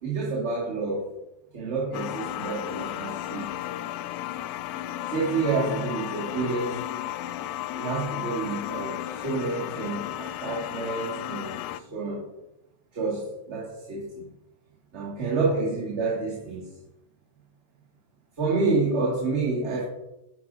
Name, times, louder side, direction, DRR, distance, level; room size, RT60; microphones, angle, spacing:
voice 1, 0.0-1.0 1.5-3.5 5.0-6.9 7.7-12.2 12.9-14.3 14.9-16.7 18.4-19.8, right 3 dB, 50° right, -5 dB, 2.1 m, -29 dB
sound 1, 1.9-11.8, left 13 dB, 45° left, 0.4 m, -34 dB
11.5 x 5.0 x 2.7 m, 0.91 s
figure-of-eight pair, 90°, 0 cm